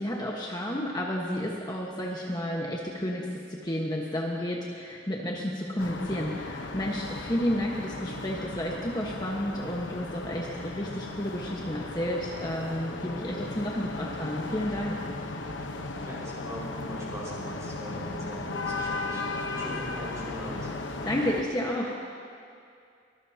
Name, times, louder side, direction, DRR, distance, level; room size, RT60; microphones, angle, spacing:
voice 1, 0.0-15.0 21.0-22.2, equal, 20° left, -3 dB, 1.3 m, -31 dB
sound 1, 5.8-21.4, left 3 dB, 90° left, 1.1 m, -36 dB
voice 2, 16.0-20.7, equal, 15° right, -7 dB, 5.2 m, -40 dB
24.0 x 20.5 x 2.9 m, 2.4 s
head